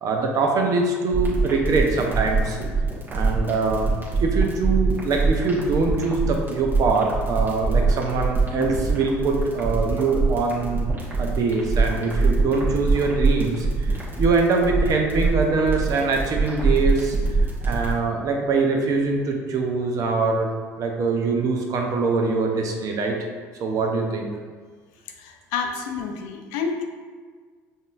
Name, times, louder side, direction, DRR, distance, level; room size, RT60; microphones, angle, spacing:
voice 1, 0.0-2.6 3.1-3.9 4.2-10.9 11.2-17.2 17.6-20.5 20.8-23.2 23.6-24.3, right 3 dB, 50° right, 2 dB, 0.7 m, -23 dB
sound 1, 1.1-17.9, right 3 dB, 30° right, 1.2 m, -23 dB
voice 2, 25.2-26.8, left 5 dB, 75° left, 4 dB, 0.5 m, -29 dB
5.3 x 2.7 x 2.5 m, 1.5 s
hypercardioid pair, 80°, 7 cm